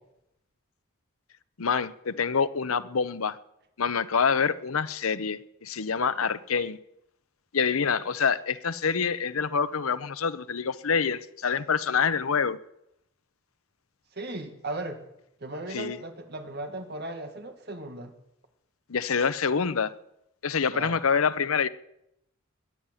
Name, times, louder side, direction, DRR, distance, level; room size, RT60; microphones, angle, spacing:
voice 1, 1.6-3.4 3.8-6.8 7.5-12.6 15.7-16.0 18.9-19.9 20.4-21.7, left 6 dB, 90° left, 0.8 m, -26 dB
voice 2, 14.1-15.0 15.4-18.2 20.7-21.0, right 2 dB, 50° right, 1.9 m, -37 dB
21.0 x 7.4 x 9.1 m
head